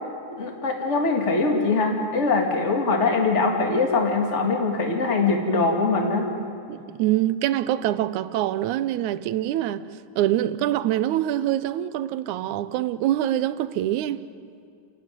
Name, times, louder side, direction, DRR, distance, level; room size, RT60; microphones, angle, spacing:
voice 1, 0.3-6.3, left 3 dB, 25° left, 2.3 m, -22 dB
voice 2, 6.7-9.9 10.2-14.2, right 13 dB, 80° right, 2.1 m, -25 dB
29.5 x 13.0 x 9.7 m
omnidirectional pair, 3.4 m